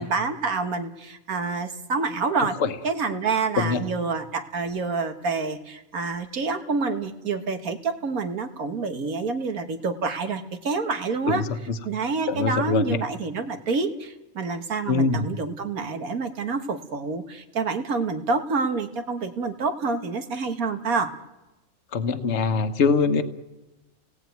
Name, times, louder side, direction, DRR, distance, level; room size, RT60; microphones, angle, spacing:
voice 1, 0.0-2.6 2.8-11.5 11.8-21.1, right 4 dB, 80° right, 7 dB, 2.0 m, -27 dB
voice 2, 11.3-11.8 12.3-13.0 14.9-15.3 21.9-23.2, left 4 dB, 55° left, 10 dB, 1.4 m, -23 dB
30.0 x 18.0 x 9.3 m, 1.1 s
omnidirectional pair, 1.5 m